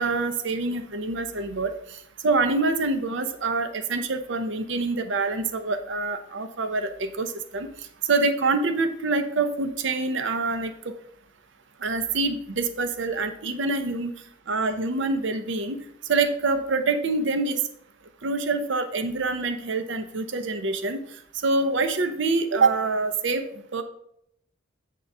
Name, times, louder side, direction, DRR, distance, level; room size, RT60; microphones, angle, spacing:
voice 1, 0.0-1.7 2.2-7.7 8.1-10.9 11.8-14.1 14.5-15.8 16.1-17.6 18.2-21.0 21.4-23.4 23.7-23.8, right 3 dB, 60° right, 9 dB, 0.7 m, -25 dB
8.3 x 3.8 x 5.4 m, 0.74 s
head